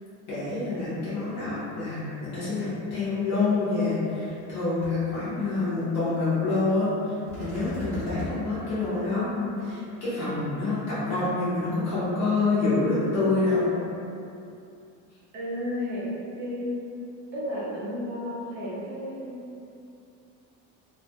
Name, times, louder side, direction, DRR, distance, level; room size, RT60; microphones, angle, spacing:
voice 1, 0.3-13.8, left 3 dB, 55° left, -12 dB, 0.8 m, -27 dB
sound 1, 3.8-3.9 4.3-4.5 4.8-4.9 7.3-8.3, equal, 10° right, 1.1 m, -38 dB
voice 2, 15.3-16.8 17.3-19.6, left 1 dB, 35° right, -8 dB, 0.6 m, -33 dB
2.3 x 2.1 x 2.7 m, 2.6 s
cardioid pair, 175°, 34 cm